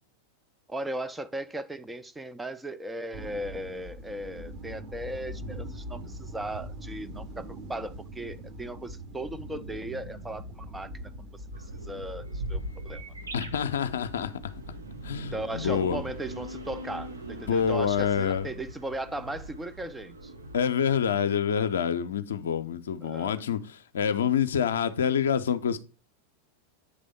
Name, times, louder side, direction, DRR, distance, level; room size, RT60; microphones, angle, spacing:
voice 1, 0.7-13.0 15.2-20.3 23.0-23.4, right 1 dB, 10° right, 0.4 m, -37 dB
sound 1, 3.1-19.8, equal, 40° right, 1.2 m, -43 dB
sound 2, 11.5-20.6, right 1 dB, 75° right, 0.8 m, -41 dB
voice 2, 13.3-14.6 15.0-16.0 17.5-18.5 20.5-25.8, left 8 dB, 65° left, 0.6 m, -27 dB
8.3 x 3.4 x 5.3 m
figure-of-eight pair, 90°, 0 cm